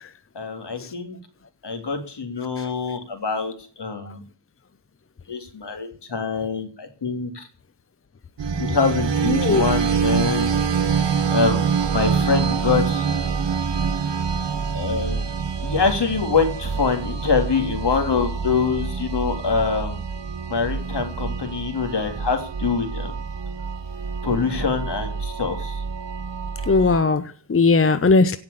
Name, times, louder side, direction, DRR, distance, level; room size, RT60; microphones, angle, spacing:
voice 1, 0.4-1.2 1.6-4.2 5.3-7.5 8.6-10.5 11.3-13.1 14.7-15.3 15.6-20.0 20.5-23.2 24.2-25.8, left 5 dB, 70° left, 3.4 m, -25 dB
sound 1, 8.4-27.0, right 6 dB, 85° right, 1.5 m, -26 dB
voice 2, 9.3-9.6 26.7-28.4, left 3 dB, 30° left, 0.9 m, -19 dB
17.0 x 5.9 x 8.6 m
wide cardioid pair, 80°, 42 cm